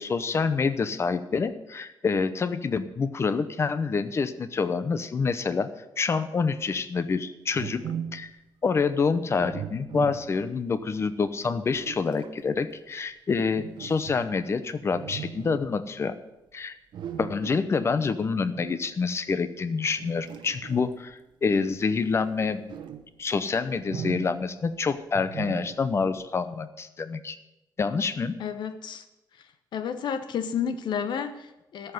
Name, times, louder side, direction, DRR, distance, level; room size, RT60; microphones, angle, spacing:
voice 1, 0.0-5.7 6.0-7.8 8.1-8.3 8.6-16.2 16.5-16.8 17.2-22.6 23.2-27.4 27.8-28.4, left 5 dB, 35° left, 13 dB, 0.8 m, -27 dB
sound 1, 7.5-8.3 9.3-10.7 11.4-12.4 13.5-14.5 14.9-15.7 16.9-17.7 18.5-18.9 20.0-21.1 21.9-23.1 23.7-24.5 25.1-26.0, right 8 dB, 85° right, 1.0 m, -38 dB
voice 2, 28.4-29.0 29.7-31.9, left 7 dB, 80° left, 11 dB, 1.0 m, -31 dB
13.5 x 5.9 x 9.2 m, 0.95 s
wide cardioid pair, 140°, 8 cm